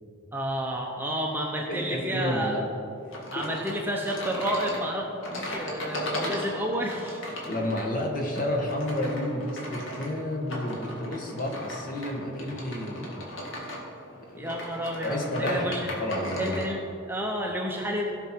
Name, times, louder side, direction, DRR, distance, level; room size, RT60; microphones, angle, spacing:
voice 1, 0.3-2.6 3.3-5.1 5.4-7.2 14.4-15.9 16.4-18.1, equal, 10° right, 0 dB, 0.7 m, -30 dB
voice 2, 1.7-2.6 3.3-3.4 5.3-5.6 7.4-13.1 14.2-14.6 15.0-16.4, left 1 dB, 40° left, 0 dB, 1.6 m, -31 dB
sound 1, 3.1-16.7, equal, 65° left, 2.1 m, -37 dB
16.5 x 6.1 x 4.6 m, 2.6 s
head